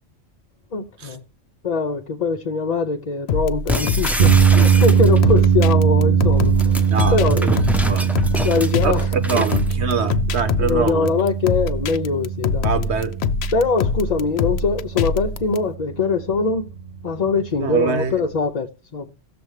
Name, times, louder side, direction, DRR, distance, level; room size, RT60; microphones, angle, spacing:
voice 1, 0.7-1.2 1.6-7.5 8.4-9.4 10.6-12.7 13.5-16.6 17.0-19.1, left 4 dB, 45° left, 0.7 m, -22 dB
sound 1, 3.3-15.6, left 5 dB, 70° left, 0.9 m, -24 dB
sound 2, 3.7-5.4 6.4-9.7, left 1 dB, ahead, 0.8 m, -27 dB
sound 3, 4.2-18.5, right 8 dB, 50° right, 0.8 m, -21 dB
voice 2, 6.9-7.6 7.8-8.1 8.8-11.1 12.6-13.1 17.6-18.1, right 5 dB, 80° right, 1.4 m, -24 dB
17.5 x 6.8 x 3.2 m
omnidirectional pair, 1.1 m